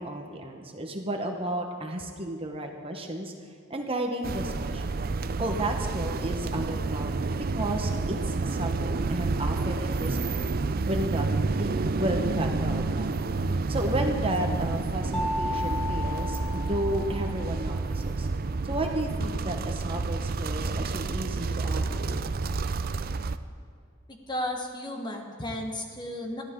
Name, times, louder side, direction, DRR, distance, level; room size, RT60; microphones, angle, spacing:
voice 1, 0.0-3.3 3.7-5.0 5.4-7.3 7.5-10.6 10.9-13.3 13.7-18.3 18.6-22.2, right 1 dB, 25° right, 3 dB, 1.2 m, -33 dB
sound 1, 4.2-23.4, right 3 dB, 45° right, 0.5 m, -29 dB
Mallet percussion, 15.1-17.6, left 2 dB, 5° left, 0.8 m, -34 dB
voice 2, 24.1-26.4, left 1 dB, 20° left, 2 dB, 1.5 m, -34 dB
22.0 x 14.0 x 3.9 m, 2.2 s
head